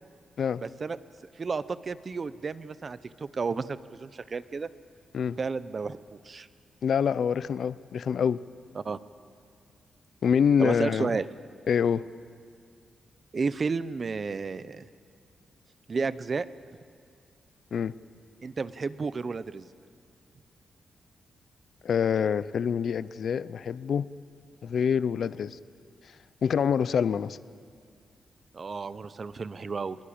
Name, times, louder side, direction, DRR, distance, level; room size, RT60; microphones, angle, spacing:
voice 1, 0.6-1.0 1.4-4.7 5.4-6.5 8.8-9.0 10.6-11.2 13.3-14.9 15.9-16.5 18.4-19.7 28.5-30.0, right 4 dB, 35° right, 15 dB, 0.7 m, -32 dB
voice 2, 6.8-8.4 10.2-11.1 11.7-12.0 17.7-17.9 21.8-24.1 24.6-25.6 26.4-27.4, left 7 dB, 60° left, 17 dB, 0.6 m, -26 dB
23.5 x 21.5 x 8.7 m, 2.2 s
wide cardioid pair, 145°, 0 cm